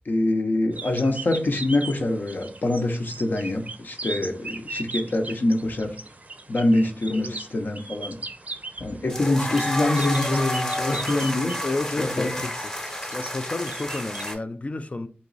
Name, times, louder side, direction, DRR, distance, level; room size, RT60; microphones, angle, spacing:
voice 1, 0.1-6.0 6.5-8.2 8.8-11.6 12.0-12.3, left 2 dB, 60° left, 0.7 m, -24 dB
sound 1, 0.7-14.3, right 2 dB, 45° right, 0.5 m, -39 dB
sound 2, 9.1-14.3, left 1 dB, 15° left, 0.9 m, -30 dB
voice 2, 11.6-12.5 13.1-15.1, left 2 dB, 40° left, 0.3 m, -31 dB
3.6 x 3.0 x 3.9 m
wide cardioid pair, 90°, 4 cm